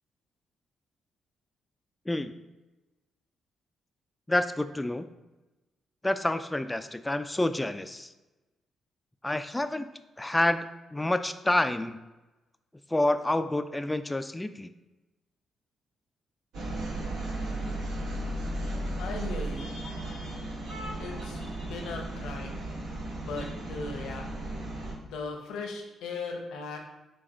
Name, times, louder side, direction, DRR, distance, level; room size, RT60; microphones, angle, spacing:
voice 1, 2.1-2.4 4.3-5.1 6.0-8.1 9.2-9.9 10.2-10.7 10.9-12.0 12.9-14.7, left 1 dB, 15° left, 10 dB, 0.3 m, -28 dB
sound 1, 16.5-24.9, right 1 dB, 80° right, 1.2 m, -35 dB
voice 2, 19.0-19.7 21.0-22.6 23.2-24.3 25.0-26.8, left 4 dB, 80° left, 2 dB, 0.7 m, -38 dB
4.7 x 2.3 x 4.2 m, 1.1 s
supercardioid pair, 55°, 0 cm